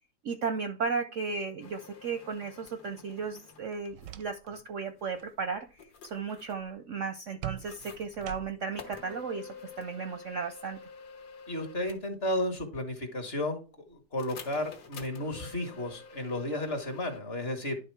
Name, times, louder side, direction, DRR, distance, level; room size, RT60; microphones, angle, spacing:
voice 1, 0.2-10.8, right 5 dB, 65° right, 8 dB, 0.8 m, -35 dB
sound 1, 1.6-3.6 4.0-4.5 5.0-6.7 7.6-8.3 8.7-12.1 14.2-17.2, left 5 dB, 65° left, 1.7 m, -49 dB
sound 2, 3.7-4.7 5.0-5.3 7.4-8.8, right 14 dB, 90° right, 1.3 m, -43 dB
voice 2, 11.5-13.6 13.9-17.8, left 1 dB, 40° left, 5 dB, 1.3 m, -33 dB
11.0 x 3.6 x 4.5 m, 0.35 s
omnidirectional pair, 1.9 m